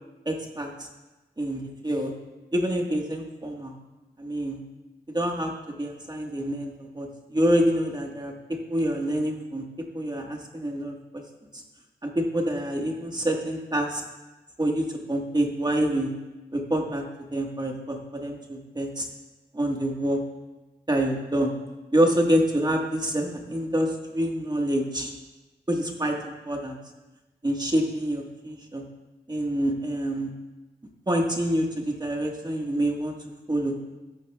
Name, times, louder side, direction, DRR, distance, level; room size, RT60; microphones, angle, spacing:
voice 1, 0.3-0.9 1.4-2.1 2.5-3.7 4.2-4.6 5.1-5.5 5.8-8.3 8.7-9.7 9.9-11.0 12.0-14.0 14.6-16.1 16.5-17.0 17.3-19.1 19.5-20.2 20.9-21.5 21.9-25.1 25.7-26.8 27.4-28.8 29.3-30.3 31.1-33.2 33.5-33.8, right 1 dB, 20° right, 1 dB, 1.6 m, -26 dB
13.0 x 12.0 x 2.4 m, 1.1 s
cardioid pair, 55°, 18 cm